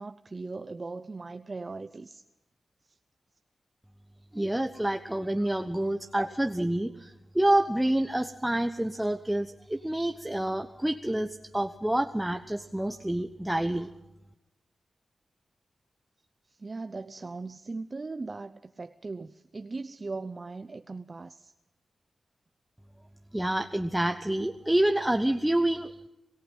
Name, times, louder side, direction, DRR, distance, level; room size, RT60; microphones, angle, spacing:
voice 1, 0.0-2.2 5.6-5.7 16.5-21.5, right 3 dB, 40° right, 0.7 m, -39 dB
voice 2, 4.3-13.9 23.3-26.1, right 1 dB, 10° right, 1.0 m, -28 dB
26.5 x 18.0 x 5.5 m
cardioid pair, 70°, 0 cm